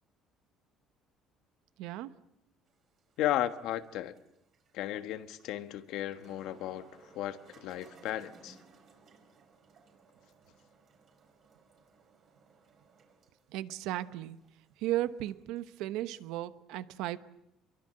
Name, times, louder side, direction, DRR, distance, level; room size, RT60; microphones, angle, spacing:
voice 1, 1.8-2.1 13.5-14.4 14.8-17.2, right 14 dB, 85° right, 1.0 m, -35 dB
sound 1, 2.7-15.8, right 4 dB, 45° right, 5.0 m, -62 dB
voice 2, 3.2-4.2 4.7-8.6, left 12 dB, 70° left, 1.4 m, -35 dB
26.0 x 22.5 x 7.7 m
cardioid pair, 140°, 0 cm